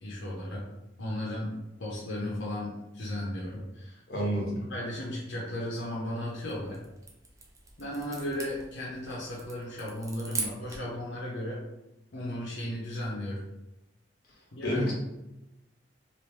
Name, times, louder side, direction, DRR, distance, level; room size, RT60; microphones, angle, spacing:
voice 1, 0.0-0.6 1.0-1.5 1.8-4.0 4.7-6.8 7.8-11.6 12.1-13.4 14.5-14.9, left 1 dB, 85° left, -4 dB, 0.7 m, -35 dB
voice 2, 4.1-4.6 14.6-14.9, equal, 55° left, -3 dB, 1.1 m, -29 dB
sound 1, 6.3-11.0, right 3 dB, 20° right, 0.5 m, -41 dB
3.1 x 2.5 x 3.2 m, 0.93 s
head